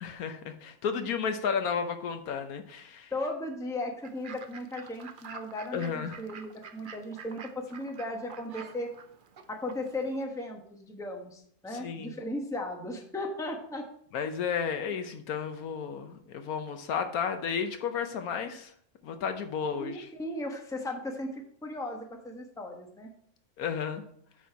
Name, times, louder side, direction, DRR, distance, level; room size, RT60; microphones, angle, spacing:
voice 1, 0.0-3.1 5.7-6.2 11.7-12.2 14.1-18.7 19.0-20.1 23.6-24.0, left 6 dB, 70° left, 8 dB, 1.2 m, -33 dB
voice 2, 3.1-8.9 9.5-13.9 19.8-23.1, left 1 dB, 5° left, 2 dB, 0.9 m, -36 dB
Fowl / Bird, 4.0-10.2, right 6 dB, 55° right, 0.5 m, -48 dB
9.3 x 4.2 x 4.6 m, 0.66 s
omnidirectional pair, 1.6 m